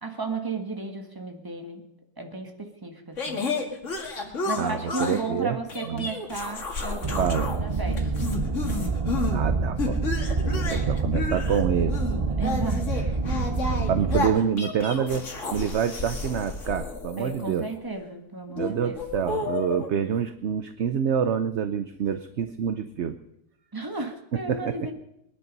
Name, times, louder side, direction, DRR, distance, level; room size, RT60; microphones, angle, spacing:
voice 1, 0.0-1.8 2.2-3.5 4.4-7.3 7.6-8.3 12.4-13.5 17.2-19.1 23.7-24.9, right 3 dB, 15° right, 4 dB, 1.6 m, -34 dB
sound 1, 3.2-5.3 5.7-7.6 7.9-9.4 9.8-17.7 18.5-19.9, left 3 dB, 55° left, 2.2 m, -32 dB
voice 2, 4.6-5.6 5.8-6.1 7.2-7.5 9.3-10.0 10.5-12.0 13.9-17.7 18.6-23.2 24.5-24.9, right 8 dB, 55° right, 11 dB, 0.9 m, -27 dB
sound 2, 7.0-14.3, right 4 dB, 40° right, 0.5 m, -27 dB
21.5 x 10.5 x 5.4 m, 0.81 s
omnidirectional pair, 1.6 m